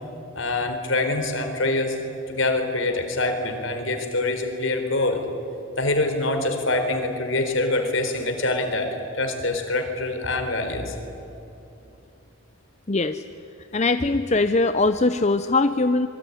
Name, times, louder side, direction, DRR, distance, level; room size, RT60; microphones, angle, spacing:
voice 1, 0.3-2.0 2.3-5.2 5.8-10.9, left 2 dB, 60° left, 6 dB, 4.1 m, -25 dB
voice 2, 12.9-13.2 13.7-16.1, left 3 dB, 30° left, 10 dB, 0.7 m, -21 dB
25.5 x 23.5 x 9.8 m, 3.0 s
head